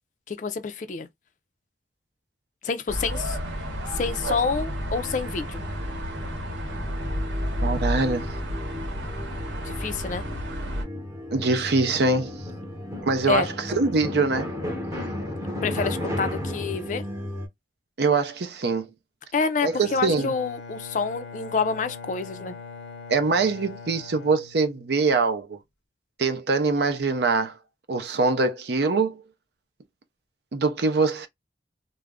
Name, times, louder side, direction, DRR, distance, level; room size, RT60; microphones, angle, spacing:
voice 1, 0.3-1.1 2.6-3.4 3.9-5.6 9.6-10.2 13.3-13.5 15.6-17.0 19.3-22.6, left 5 dB, 40° left, 0.3 m, -28 dB
sound 1, 2.9-10.8, equal, 85° right, 0.9 m, -31 dB
sound 2, 3.9-17.5, left 1 dB, 15° right, 0.8 m, -35 dB
voice 2, 7.6-8.3 11.3-12.5 13.1-14.5 18.0-18.9 19.6-20.3 23.1-25.6 26.2-27.5 27.9-29.2 30.5-31.3, right 3 dB, 60° right, 0.5 m, -23 dB
Bowed string instrument, 19.7-25.2, left 4 dB, 85° left, 0.6 m, -42 dB
2.3 x 2.0 x 3.4 m
head